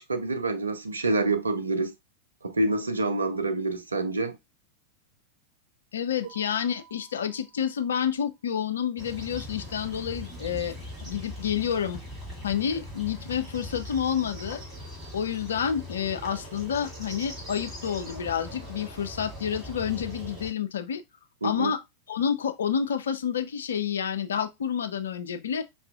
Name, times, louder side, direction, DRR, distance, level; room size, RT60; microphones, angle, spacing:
voice 1, 0.0-1.9 2.4-4.4 21.4-21.7, right 2 dB, 75° right, 0.5 m, -27 dB
voice 2, 5.9-10.8 11.0-12.0 12.4-14.6 15.1-21.0 21.4-21.8 22.1-25.6, left 8 dB, 65° left, 0.4 m, -29 dB
Mallet percussion, 6.2-8.3, right 9 dB, 30° left, 1.1 m, -55 dB
sound 1, 9.0-20.5, left 1 dB, 5° right, 2.5 m, -41 dB
5.5 x 2.4 x 2.3 m
figure-of-eight pair, 90°, 0 cm